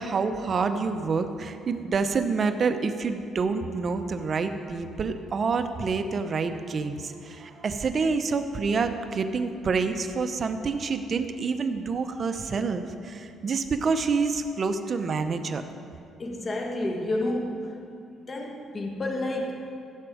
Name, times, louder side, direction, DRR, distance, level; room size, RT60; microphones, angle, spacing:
voice 1, 0.0-15.6, right 4 dB, 40° right, 8 dB, 0.7 m, -27 dB
voice 2, 16.2-17.8 18.3-19.5, left 1 dB, 30° left, 1 dB, 1.5 m, -30 dB
15.5 x 6.2 x 5.0 m, 2.6 s
cardioid pair, 110°, 0 cm